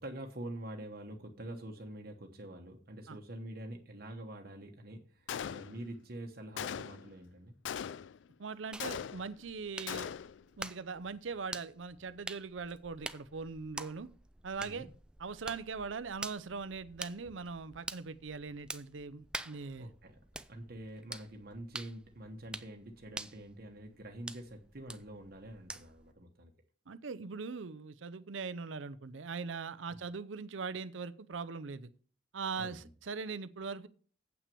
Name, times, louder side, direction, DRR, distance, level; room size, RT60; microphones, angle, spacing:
voice 1, 0.0-7.5 14.6-14.9 19.8-20.2 20.5-26.5 29.9-30.0 32.6-32.9, right 1 dB, 50° right, 2 dB, 1.1 m, -46 dB
Gunshot gunfire, 5.3-6.0 6.6-7.1 7.6-8.3 8.8-9.5 9.9-10.4, left 8 dB, 70° left, 0.4 m, -40 dB
voice 2, 8.4-10.1 10.6-14.1 14.4-14.9 15.2-19.9 26.9-31.9 32.3-33.9, right 5 dB, 85° right, 16 dB, 0.6 m, -41 dB
sound 1, 8.7-26.1, right 2 dB, 5° right, 0.4 m, -47 dB
8.3 x 6.0 x 6.9 m, 0.43 s
head